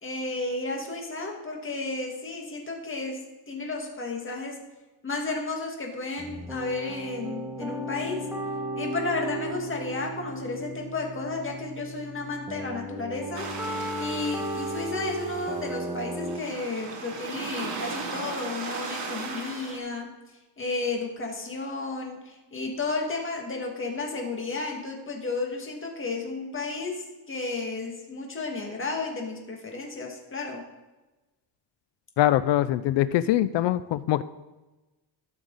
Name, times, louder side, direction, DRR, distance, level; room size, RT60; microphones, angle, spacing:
voice 1, 0.0-4.7 5.0-8.3 8.8-13.5 14.0-20.1 20.6-30.6, left 3 dB, 30° left, 1 dB, 2.0 m, -33 dB
sound 1, 6.2-16.4, right 1 dB, 5° right, 1.5 m, -35 dB
sound 2, 13.3-19.8, right 4 dB, 80° right, 2.9 m, -37 dB
voice 2, 32.2-34.2, left 13 dB, 85° left, 15 dB, 0.5 m, -23 dB
13.5 x 6.5 x 4.0 m, 1.1 s
cardioid pair, 110°, 42 cm